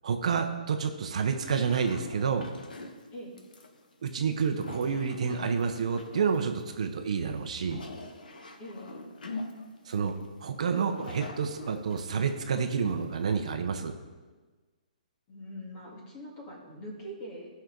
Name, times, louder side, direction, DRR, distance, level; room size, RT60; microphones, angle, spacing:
voice 1, 0.0-2.5 4.0-7.8 9.8-10.1 10.4-13.9, right 6 dB, 50° right, 6 dB, 0.9 m, -29 dB
sound 1, 1.5-13.6, left 2 dB, 90° left, 1.3 m, -45 dB
voice 2, 8.6-9.0 15.3-17.5, equal, 20° left, -2 dB, 1.9 m, -43 dB
14.5 x 5.8 x 3.9 m, 1.3 s
hypercardioid pair, 175°, 4 cm